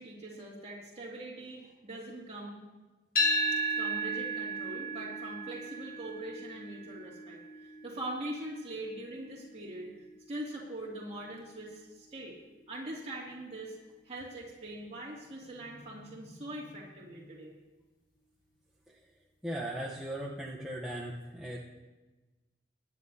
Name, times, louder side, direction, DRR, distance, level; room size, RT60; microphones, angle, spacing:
voice 1, 0.0-2.6 3.5-9.9 10.3-12.4 12.7-13.8 14.0-17.5, right 1 dB, 35° right, -3 dB, 2.5 m, -42 dB
sound 1, 3.2-11.3, right 1 dB, 50° left, 1.7 m, -35 dB
voice 2, 19.4-21.6, right 1 dB, 5° right, -6 dB, 0.9 m, -38 dB
21.0 x 9.8 x 2.8 m, 1.2 s
head